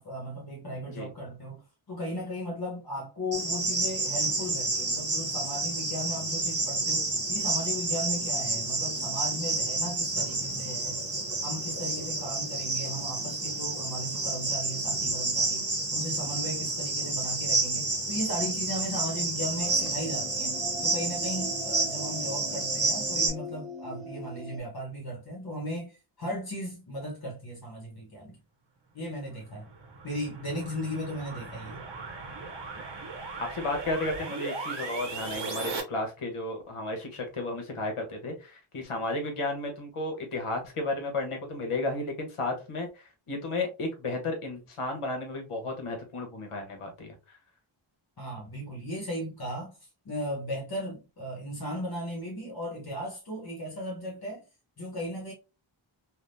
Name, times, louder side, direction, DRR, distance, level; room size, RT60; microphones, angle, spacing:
voice 1, 0.0-11.0 11.4-28.4 28.9-29.7 30.0-31.8 48.2-49.8 50.0-54.4 54.8-55.3, equal, 50° left, 1.1 m, -36 dB
Cricket, 3.3-23.3, right 3 dB, 30° right, 1.1 m, -30 dB
sound 1, 19.6-24.6, right 1 dB, ahead, 0.9 m, -41 dB
sound 2, 29.3-35.8, right 4 dB, 60° right, 1.0 m, -38 dB
voice 2, 33.5-47.4, left 2 dB, 85° left, 1.2 m, -33 dB
3.4 x 2.5 x 2.5 m
wide cardioid pair, 135°, 49 cm